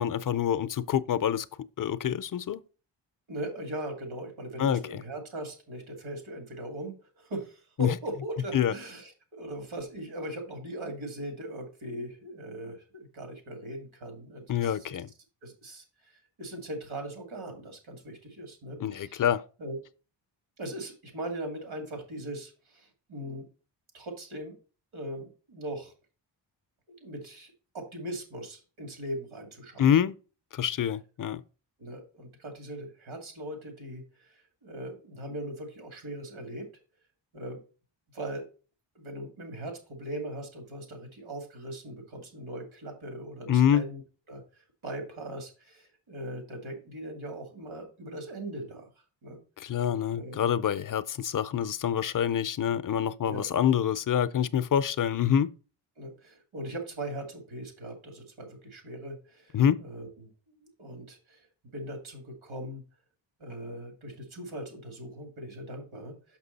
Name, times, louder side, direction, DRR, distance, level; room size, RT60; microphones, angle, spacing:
voice 1, 0.0-1.5 1.8-2.6 4.6-5.0 7.8-7.9 8.5-8.7 14.5-15.1 18.8-19.4 29.8-30.1 30.5-31.4 43.5-43.8 49.6-55.5 59.5-59.8, left 9 dB, 45° left, 0.5 m, -26 dB
voice 2, 3.3-15.0 15.4-19.2 19.6-19.8 20.6-23.5 23.9-24.6 24.9-25.9 27.0-29.9 31.8-36.7 37.3-37.6 38.1-38.4 38.9-44.0 44.3-48.9 49.2-49.4 50.1-50.4 53.2-53.5 56.0-61.5 61.7-62.8 63.4-66.4, right 1 dB, 80° right, 2.6 m, -40 dB
6.0 x 6.0 x 4.0 m
cardioid pair, 85°, 48 cm